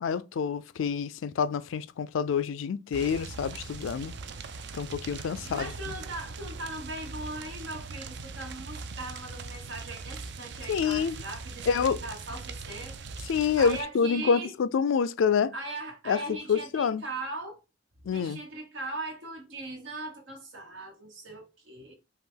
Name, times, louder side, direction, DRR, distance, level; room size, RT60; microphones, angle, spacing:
voice 1, 0.0-4.1 4.8-5.9 10.7-11.2 11.7-12.0 13.2-15.5 16.1-17.0 18.0-18.4, left 6 dB, 90° left, 0.4 m, -27 dB
sound 1, 2.9-13.8, right 4 dB, 60° right, 0.4 m, -41 dB
voice 2, 5.4-13.0 13.6-14.5 15.5-17.6 18.1-21.9, right 2 dB, 85° right, 1.4 m, -39 dB
5.5 x 2.3 x 3.7 m
head